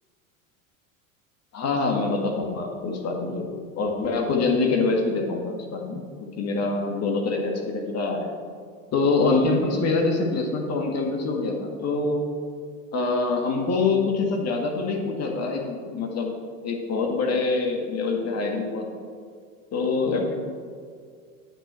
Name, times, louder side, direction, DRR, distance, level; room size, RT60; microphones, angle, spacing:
voice 1, 1.5-8.3 8.9-12.3 12.9-16.4 16.6-18.9 19.7-20.4, left 3 dB, 40° left, 2 dB, 1.8 m, -25 dB
9.0 x 8.9 x 4.4 m, 2.1 s
hypercardioid pair, 90°, 41 cm